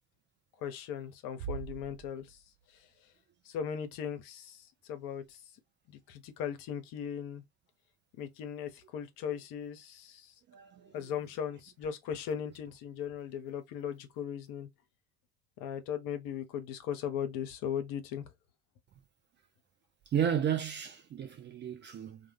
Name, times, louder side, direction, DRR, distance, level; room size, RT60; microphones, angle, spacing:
voice 1, 0.6-2.4 3.4-5.4 5.9-7.4 8.2-10.3 10.9-14.7 15.6-18.3, left 8 dB, 50° left, 0.7 m, -38 dB
sound 1, 1.4-2.8, right 7 dB, 55° right, 0.9 m, -42 dB
voice 2, 20.1-22.2, right 9 dB, 25° right, 0.4 m, -32 dB
2.3 x 2.1 x 2.9 m
figure-of-eight pair, 65°, 44 cm